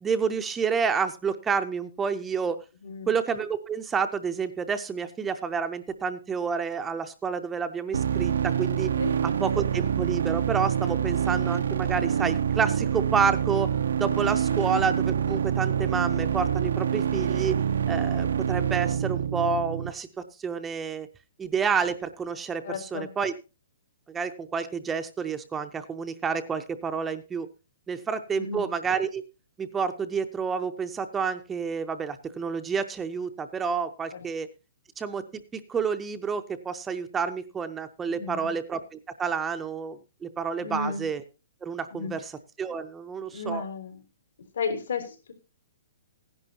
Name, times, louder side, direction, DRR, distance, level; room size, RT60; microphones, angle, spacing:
voice 1, 0.0-2.6 3.1-8.9 9.2-13.7 14.0-17.6 17.9-20.1 20.4-21.1 21.4-23.3 24.1-27.5 27.9-29.2 29.6-34.5 35.0-41.2 41.6-42.3 42.6-43.6, right 6 dB, 10° right, 8 dB, 0.5 m, -29 dB
sound 1, 7.9-19.9, right 8 dB, 85° right, 0.6 m, -26 dB
voice 2, 22.6-23.1 28.4-28.7 34.1-34.3 38.1-38.5 40.6-41.1 41.9-42.1 43.3-44.0 44.5-45.3, left 4 dB, 85° left, 5 dB, 3.7 m, -33 dB
15.5 x 11.0 x 2.8 m, 0.30 s
hypercardioid pair, 170°, 0 cm